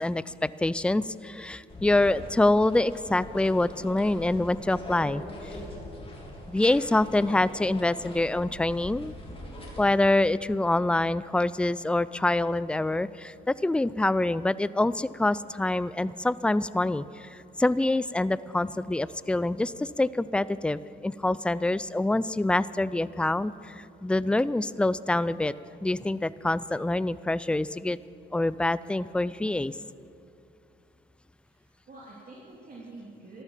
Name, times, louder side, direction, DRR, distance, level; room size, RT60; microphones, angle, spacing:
voice 1, 0.0-5.2 6.5-9.1 9.8-25.5 25.8-28.0 28.3-29.7, left 2 dB, 5° left, 17 dB, 0.3 m, -26 dB
sound 1, 1.7-9.8, left 1 dB, 30° left, 3.5 m, -42 dB
voice 2, 31.4-33.4, right 2 dB, 45° right, -4 dB, 2.9 m, -47 dB
13.5 x 12.5 x 7.4 m, 2.5 s
cardioid pair, 90°, 20 cm